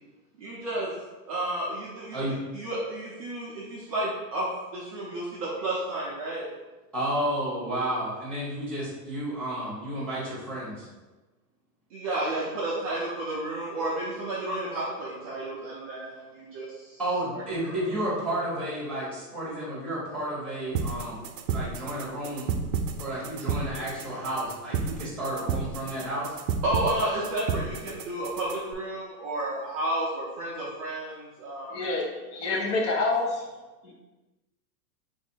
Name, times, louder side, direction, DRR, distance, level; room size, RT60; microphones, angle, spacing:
voice 1, 0.4-0.9 1.3-2.2 2.5-6.5 11.9-17.0 17.3-17.9 26.6-31.8 32.5-32.7, right 1 dB, 25° right, -8 dB, 0.4 m, -32 dB
voice 2, 6.9-10.9 17.0-22.5 23.0-26.4, right 1 dB, ahead, -6 dB, 1.0 m, -31 dB
sound 1, 20.7-28.7, right 6 dB, 85° right, 0.6 m, -32 dB
voice 3, 31.7-33.5 33.8-34.0, left 3 dB, 45° left, 0 dB, 0.9 m, -28 dB
3.2 x 2.5 x 4.4 m, 1.2 s
hypercardioid pair, 145°, 49 cm